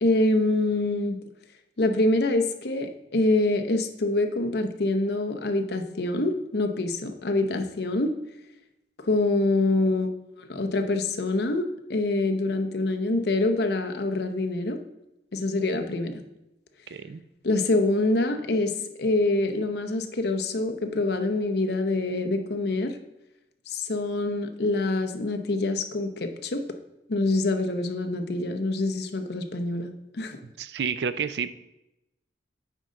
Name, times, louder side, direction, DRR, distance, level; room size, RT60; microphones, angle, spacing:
voice 1, 0.0-1.2 1.8-8.1 9.1-10.1 10.4-14.8 15.3-16.2 17.4-18.7 19.0-23.0 23.7-26.6 27.1-29.9 30.1-30.4, left 2 dB, 65° left, 6 dB, 0.8 m, -25 dB
voice 2, 16.9-17.2 30.4-31.5, right 6 dB, 65° right, 14 dB, 0.4 m, -30 dB
9.0 x 3.8 x 5.2 m, 0.89 s
head